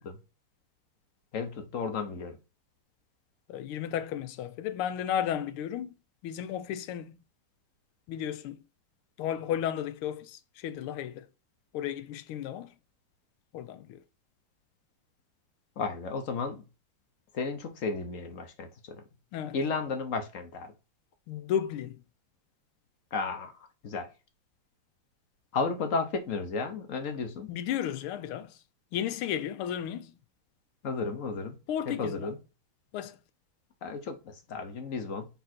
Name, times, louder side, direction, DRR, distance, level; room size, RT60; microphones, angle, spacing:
voice 1, 1.3-2.4 15.8-16.6 17.3-19.0 19.5-20.7 23.1-23.5 23.8-24.1 25.5-27.5 30.8-31.6 31.9-32.4 33.8-35.3, left 4 dB, 55° left, 0.9 m, -33 dB
voice 2, 3.5-5.9 6.2-7.2 8.1-8.6 9.2-11.2 11.7-12.7 13.5-14.0 19.3-19.5 21.3-21.9 27.5-28.5 28.9-30.1 31.7-32.3 32.9-33.2, left 10 dB, 85° left, 1.5 m, -33 dB
7.0 x 3.5 x 4.2 m
omnidirectional pair, 2.4 m